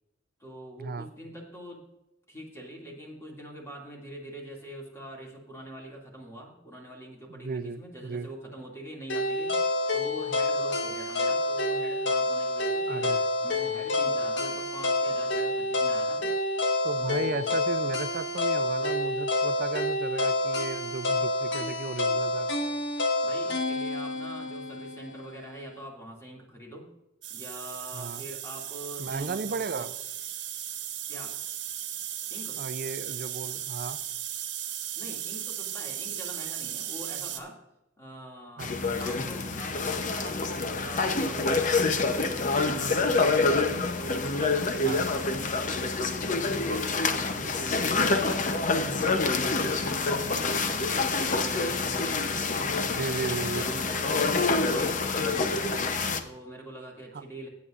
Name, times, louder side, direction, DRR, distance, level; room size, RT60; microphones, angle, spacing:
voice 1, 0.4-1.9 2.3-13.1 13.4-16.3 17.0-17.6 23.2-26.9 27.3-29.9 31.1-31.4 32.3-32.6 35.0-37.6 38.0-45.6 46.3-55.9 56.2-57.5, right 1 dB, 15° left, -2 dB, 2.3 m, -44 dB
voice 2, 7.3-8.3 12.9-13.2 16.8-22.5 27.9-28.2 29.0-29.9 32.6-34.0 38.6-39.0 44.8-45.0 53.0-53.7 57.1-57.2, right 4 dB, 55° right, 14 dB, 0.5 m, -35 dB
sound 1, 9.1-25.2, left 2 dB, 75° left, 1.4 m, -28 dB
sound 2, 27.2-37.4, right 11 dB, 70° right, 1.2 m, -36 dB
sound 3, 38.6-56.2, left 3 dB, 45° left, 0.8 m, -27 dB
17.5 x 8.3 x 2.5 m, 0.90 s
head